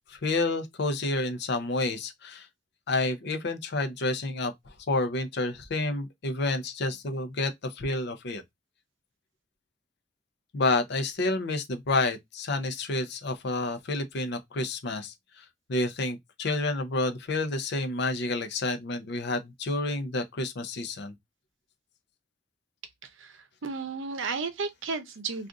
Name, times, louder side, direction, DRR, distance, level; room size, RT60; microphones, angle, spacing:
voice 1, 0.1-2.5 2.9-4.5 4.9-8.4 10.5-21.1, left 2 dB, 60° left, 0.6 m, -29 dB
voice 2, 23.2-25.5, right 4 dB, 75° right, 0.6 m, -33 dB
2.5 x 2.4 x 3.5 m
head